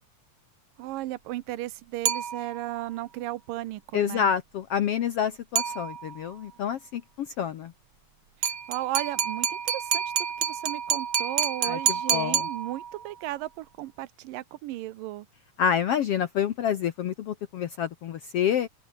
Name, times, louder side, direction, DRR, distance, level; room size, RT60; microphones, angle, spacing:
voice 1, 0.8-4.3 8.4-15.3, right 16 dB, 85° right, 2.5 m, -35 dB
sound 1, 2.1-2.8 5.6-6.3 8.4-13.1, right 8 dB, 45° right, 2.1 m, -28 dB
voice 2, 3.9-7.7 11.6-11.8 12.1-12.5 15.6-18.7, left 8 dB, 70° left, 1.5 m, -28 dB
open air
omnidirectional pair, 3.9 m